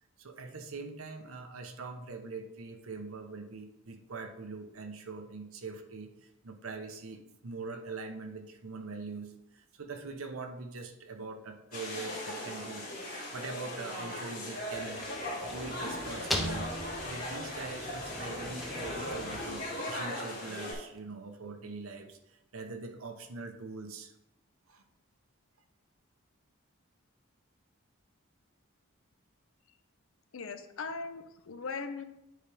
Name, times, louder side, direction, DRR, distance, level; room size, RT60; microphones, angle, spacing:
voice 1, 0.2-6.1 6.4-15.1 15.4-16.7 17.0-24.1 24.7-24.8, right 3 dB, 80° right, 6 dB, 0.8 m, -43 dB
sound 1, 11.7-20.7, left 1 dB, 40° left, 2.5 m, -38 dB
sound 2, 14.7-20.7, equal, ahead, 0.6 m, -40 dB
voice 2, 30.3-32.0, left 4 dB, 75° left, 9 dB, 0.6 m, -39 dB
9.5 x 4.9 x 3.4 m, 0.88 s
head